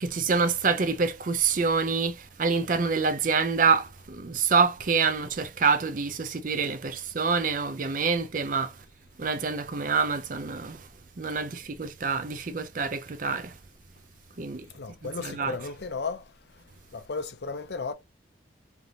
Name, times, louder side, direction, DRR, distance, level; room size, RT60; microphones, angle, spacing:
voice 1, 0.0-8.8 9.2-10.9 11.2-13.6 14.4-14.7 15.0-15.6, right 5 dB, 45° right, 0.5 m, -26 dB
voice 2, 14.7-16.2 16.9-17.9, left 4 dB, 60° left, 0.6 m, -34 dB
3.7 x 3.3 x 2.7 m
head